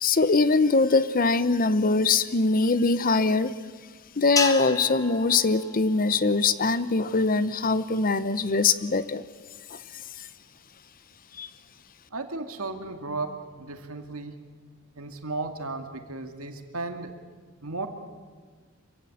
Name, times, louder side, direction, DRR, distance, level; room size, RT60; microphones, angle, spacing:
voice 1, 0.0-3.6 4.2-9.2 9.7-9.8 11.4-11.5, left 3 dB, 40° left, 15 dB, 0.8 m, -22 dB
sound 1, 4.4-6.8, left 3 dB, 15° left, 1.5 m, -32 dB
voice 2, 12.1-14.3 15.0-17.1 17.6-17.9, right 3 dB, 90° right, 6 dB, 2.3 m, -35 dB
26.0 x 16.0 x 8.8 m, 1.5 s
head